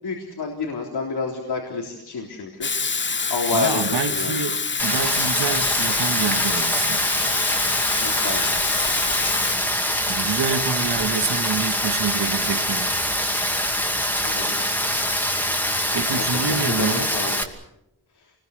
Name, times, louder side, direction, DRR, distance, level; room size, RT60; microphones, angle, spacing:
voice 1, 0.0-2.7 3.3-4.4 8.0-8.6 14.2-14.8 15.9-17.4 18.1-18.3, left 3 dB, 90° left, 0 dB, 3.7 m, -29 dB
Water tap faucet / Sink (filling or washing), 2.6-9.6, left 5 dB, 30° left, 0.8 m, -26 dB
voice 2, 3.5-7.2 10.1-13.1 15.9-17.1, right 6 dB, 80° right, 8 dB, 2.1 m, -27 dB
Rain, 4.8-17.4, equal, 5° left, 2.4 m, -24 dB
28.0 x 21.5 x 6.6 m, 0.85 s
wide cardioid pair, 130°, 38 cm